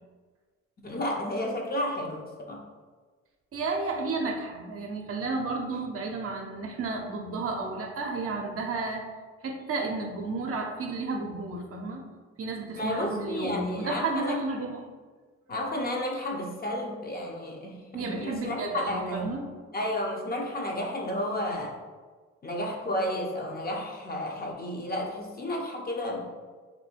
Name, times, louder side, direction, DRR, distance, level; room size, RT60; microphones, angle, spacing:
voice 1, 0.8-2.6 12.8-14.4 15.5-19.3 19.7-21.8 22.4-26.3, left 1 dB, 30° left, 0 dB, 0.7 m, -32 dB
voice 2, 3.5-9.0 9.4-12.0 12.4-14.8 17.9-19.4, right 3 dB, 50° right, 1 dB, 0.6 m, -32 dB
2.7 x 2.7 x 4.3 m, 1.4 s
cardioid pair, 90°, 30 cm